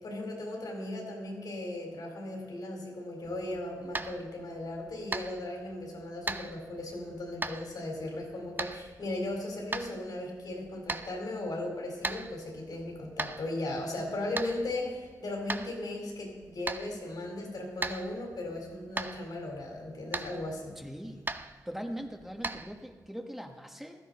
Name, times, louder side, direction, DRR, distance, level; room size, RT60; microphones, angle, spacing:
voice 1, 0.0-20.7, left 1 dB, 75° left, 0 dB, 3.9 m, -37 dB
sound 1, 3.2-23.1, right 3 dB, 30° right, 0.6 m, -41 dB
voice 2, 20.8-21.2 21.7-24.0, equal, 5° right, 3 dB, 1.2 m, -41 dB
15.5 x 13.0 x 4.2 m, 1.4 s
cardioid pair, 80°, 7 cm